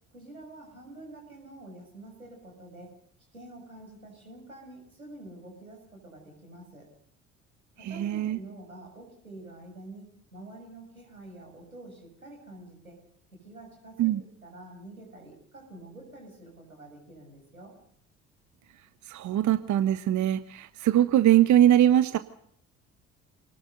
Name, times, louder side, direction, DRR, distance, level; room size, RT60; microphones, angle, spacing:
voice 1, 0.1-2.9 3.3-6.9 7.8-10.0 10.3-13.0 13.4-14.1 14.4-17.7, right 2 dB, 90° right, 0 dB, 6.7 m, -47 dB
voice 2, 7.8-8.4 14.0-14.2 19.1-22.2, right 12 dB, 45° right, 13 dB, 1.3 m, -22 dB
27.5 x 19.5 x 6.7 m, 0.66 s
figure-of-eight pair, 55°, 41 cm